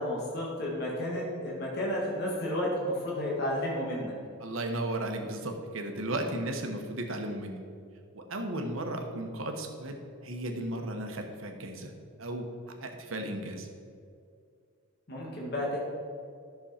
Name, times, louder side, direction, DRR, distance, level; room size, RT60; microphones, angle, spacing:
voice 1, 0.0-4.1 15.1-15.8, left 1 dB, 50° left, -4 dB, 1.8 m, -32 dB
voice 2, 4.4-7.6 8.1-11.9 12.2-12.5 12.8-13.7, right 1 dB, 70° right, 3 dB, 1.1 m, -35 dB
11.0 x 6.3 x 4.3 m, 2.3 s
head